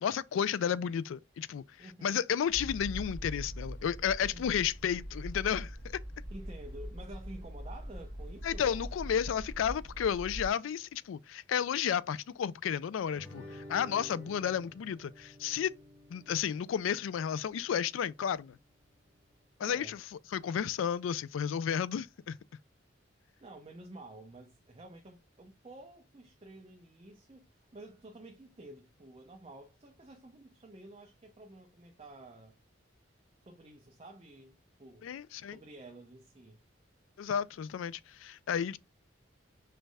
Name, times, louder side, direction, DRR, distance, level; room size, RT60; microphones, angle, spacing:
voice 1, 0.0-6.0 8.4-13.4 13.7-15.7 16.1-18.6 19.6-20.0 20.3-22.4 35.0-35.6 37.2-38.8, left 8 dB, 85° left, 0.3 m, -32 dB
voice 2, 1.8-2.3 4.3-4.7 6.3-8.9 13.4-13.7 14.0-14.3 19.6-20.0 23.4-32.5 33.4-35.1 35.5-36.6, right 2 dB, 30° right, 0.6 m, -51 dB
sound 1, 2.5-10.5, equal, 40° left, 2.5 m, -42 dB
Guitar, 13.1-18.2, left 1 dB, 10° left, 2.3 m, -51 dB
5.2 x 3.3 x 2.2 m
head